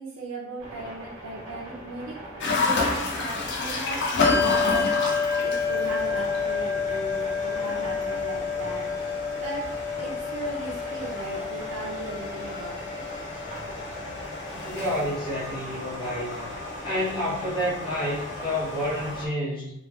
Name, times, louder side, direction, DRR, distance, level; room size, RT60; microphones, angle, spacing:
voice 1, 0.0-2.2 2.6-8.9 9.4-13.0 14.0-14.2 14.5-14.7, right 2 dB, 80° right, -4 dB, 0.5 m, -38 dB
sound 1, 0.6-19.3, right 1 dB, 55° right, 1.1 m, -41 dB
sound 2, 2.4-19.3, left 3 dB, 55° left, 0.5 m, -32 dB
Bell, 4.2-14.2, left 5 dB, 10° right, 0.4 m, -29 dB
voice 2, 14.6-16.5 16.8-19.7, equal, 25° left, -8 dB, 0.9 m, -29 dB
2.9 x 2.3 x 2.3 m, 0.81 s
head